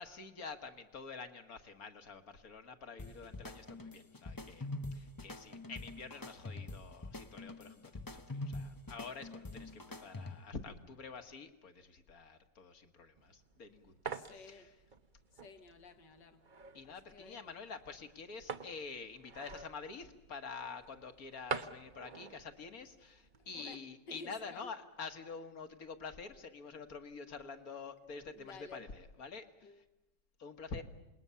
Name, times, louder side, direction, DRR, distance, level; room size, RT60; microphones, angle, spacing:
voice 1, 0.0-14.0 14.4-14.7 16.7-29.7 30.4-30.8, left 4 dB, 55° left, 2.0 m, -48 dB
sound 1, 3.0-10.6, left 2 dB, 25° left, 0.4 m, -45 dB
sound 2, 13.2-23.6, right 5 dB, 35° right, 0.8 m, -47 dB
voice 2, 14.1-14.7 15.3-16.4 16.8-17.6 23.4-23.8 24.1-24.7 28.3-28.9 29.6-29.8, left 3 dB, 75° left, 2.4 m, -53 dB
27.5 x 21.0 x 7.0 m
omnidirectional pair, 1.9 m